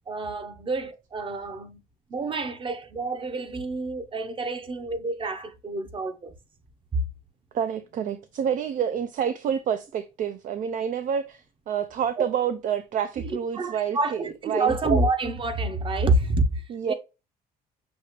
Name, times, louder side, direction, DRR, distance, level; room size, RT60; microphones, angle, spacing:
voice 1, 0.1-1.8 2.1-6.3 12.2-12.3 13.2-16.6 16.9-17.0, right 2 dB, 30° right, 0.8 m, -27 dB
voice 2, 7.5-14.8 16.7-16.9, right 8 dB, 50° right, 0.4 m, -28 dB
6.1 x 2.4 x 3.1 m
cardioid pair, 110°, 17 cm